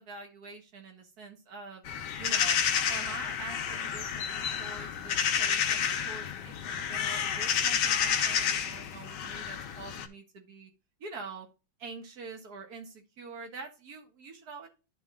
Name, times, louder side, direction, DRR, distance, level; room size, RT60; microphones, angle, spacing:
voice 1, 0.0-1.8 2.2-2.6 2.9-10.7 11.0-11.5 11.8-14.7, right 4 dB, 50° right, 3 dB, 2.0 m, -45 dB
sound 1, 1.9-10.1, left 8 dB, 65° left, 1.4 m, -30 dB
11.0 x 3.9 x 3.7 m, 0.29 s
omnidirectional pair, 2.2 m